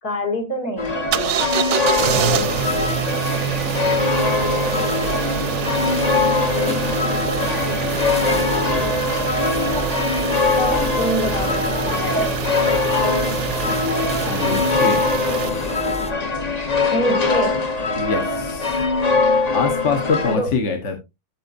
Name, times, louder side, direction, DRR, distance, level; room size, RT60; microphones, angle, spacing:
voice 1, 0.0-1.5 7.3-9.0 10.6-12.6 16.9-17.7 20.3-20.6, equal, 70° left, 2.9 m, -28 dB
sound 1, 0.8-20.4, left 4 dB, 30° left, 1.0 m, -22 dB
sound 2, 1.1-15.5, right 10 dB, 60° right, 0.9 m, -26 dB
sound 3, 1.9-16.1, equal, 5° left, 0.6 m, -30 dB
voice 2, 14.3-15.0 18.0-18.8 19.5-21.0, left 4 dB, 50° left, 1.4 m, -24 dB
13.5 x 6.9 x 2.6 m
omnidirectional pair, 1.7 m